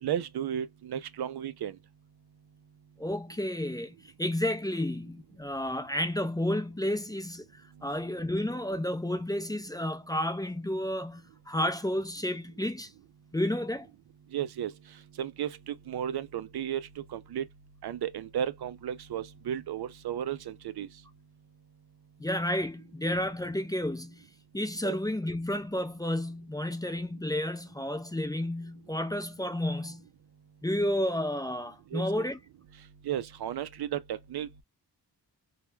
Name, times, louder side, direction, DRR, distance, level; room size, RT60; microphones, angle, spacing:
voice 1, 0.0-1.8 14.3-14.7 15.2-17.5 17.8-20.9 24.8-25.0 31.9-32.3 33.0-34.6, right 10 dB, 65° right, 0.5 m, -34 dB
voice 2, 3.0-12.9 13.3-13.9 22.2-24.3 24.5-30.0 30.6-32.4, left 1 dB, 10° left, 0.4 m, -31 dB
2.2 x 2.2 x 3.1 m
cardioid pair, 55°, 42 cm